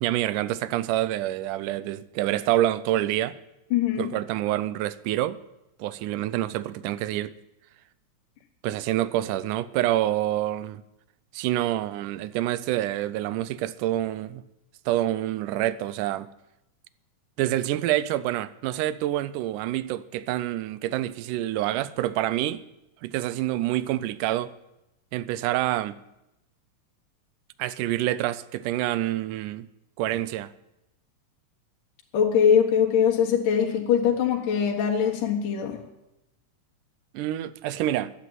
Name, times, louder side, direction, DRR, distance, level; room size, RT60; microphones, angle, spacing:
voice 1, 0.0-3.4 4.0-5.4 5.8-7.3 8.6-10.8 11.3-14.4 14.9-16.3 17.4-22.6 23.0-24.5 25.1-26.0 27.6-29.7 30.0-30.5 37.1-38.1, right 14 dB, 80° right, 2.1 m, -27 dB
voice 2, 3.7-4.1 32.1-35.8, left 8 dB, 75° left, 3.1 m, -22 dB
12.0 x 8.4 x 9.0 m
omnidirectional pair, 3.8 m